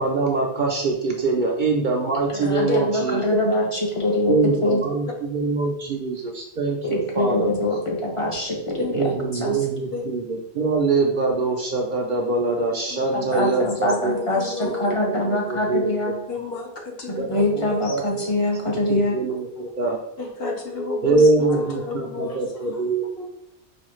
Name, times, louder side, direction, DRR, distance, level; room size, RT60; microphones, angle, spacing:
voice 1, 0.0-3.2 4.3-7.5 8.9-14.2 14.6-15.9 17.1-18.3 18.7-20.0 21.0-23.3, right 3 dB, 60° right, 0 dB, 0.6 m, -24 dB
voice 2, 2.3-4.4 4.6-4.8 6.8-9.1 9.3-9.6 13.1-16.2 17.1-19.2, left 1 dB, 35° left, -1 dB, 0.7 m, -24 dB
voice 3, 8.8-9.1 9.9-10.0 12.9-14.9 16.3-16.7 17.0-17.9 20.2-21.2 21.5-22.4, left 3 dB, 60° left, 0 dB, 1.0 m, -31 dB
5.0 x 2.3 x 3.0 m, 0.86 s
omnidirectional pair, 1.1 m